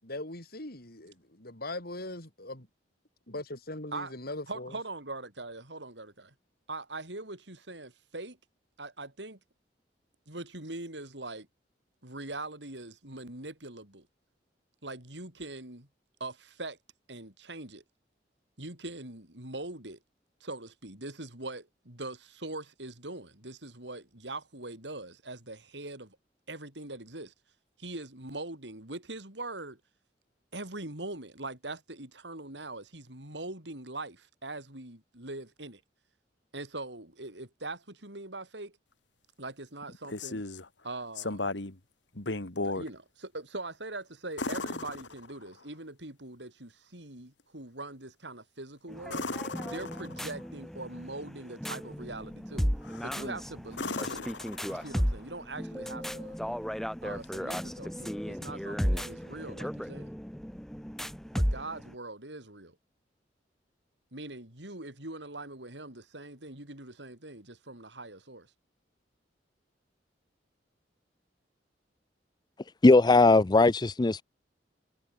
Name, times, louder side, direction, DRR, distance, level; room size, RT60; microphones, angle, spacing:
voice 1, 0.0-2.6 3.3-4.7, left 2 dB, 60° left, 5.8 m, -40 dB
voice 2, 4.5-6.3 6.7-8.4 8.8-9.4 10.3-11.5 12.0-14.1 14.8-15.9 16.2-16.8 17.1-17.8 18.6-20.0 20.4-26.2 26.5-27.3 27.8-29.8 30.5-35.8 36.5-38.8 39.4-40.4 40.8-41.5 42.6-49.3 49.6-52.7 53.0-54.3 54.7-56.4 57.0-60.1 61.3-62.8 64.1-68.5, right 2 dB, 75° right, 5.8 m, -42 dB
sound 1, 39.8-40.7 41.2-41.8 42.2-42.9 44.4-45.6 49.1-50.4 52.8-53.2 53.7-55.1 57.2-57.3, left 3 dB, 90° left, 2.5 m, -36 dB
sound 2, 48.9-61.9, equal, ahead, 1.3 m, -35 dB
voice 3, 72.8-74.2, left 3 dB, 25° left, 0.5 m, -19 dB
head